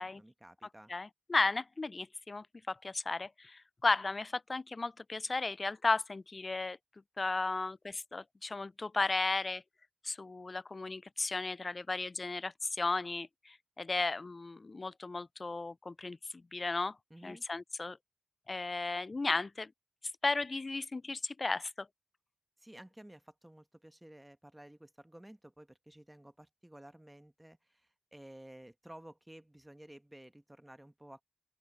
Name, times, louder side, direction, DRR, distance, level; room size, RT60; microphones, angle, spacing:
voice 1, 0.0-0.9 17.1-17.4 22.6-31.2, right 1 dB, 10° right, 1.1 m, -54 dB
voice 2, 0.9-6.8 7.2-9.6 10.0-16.2 16.5-17.0 17.2-18.0 18.5-19.7 20.2-21.9, left 3 dB, 35° left, 0.3 m, -35 dB
open air
cardioid pair, 70°, 0 cm